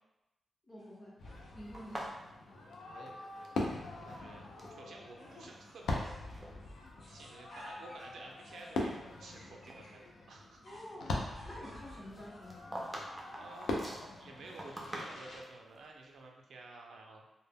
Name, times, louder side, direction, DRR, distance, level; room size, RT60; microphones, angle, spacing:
voice 1, 0.7-1.2 1.5-2.1 10.6-12.8, equal, 25° left, -5 dB, 0.7 m, -49 dB
sound 1, 0.8-2.3 3.2-4.5 5.2-6.3 6.6-10.0 10.6-13.0, equal, 65° left, 1.0 m, -58 dB
Fireworks, 1.2-15.4, left 2 dB, 90° left, 0.4 m, -42 dB
sound 2, 1.7-3.7 4.0-4.8 5.4-6.0 6.3-6.5 7.2-7.3 7.8-9.3 9.7-9.8 12.1-15.5, right 1 dB, 10° right, 0.4 m, -46 dB
voice 2, 2.5-3.7 4.0-4.5 4.8-6.2 7.1-10.6 13.3-17.2, right 3 dB, 80° right, 1 dB, 0.4 m, -52 dB
2.0 x 2.0 x 3.4 m, 0.94 s
wide cardioid pair, 140°, 0 cm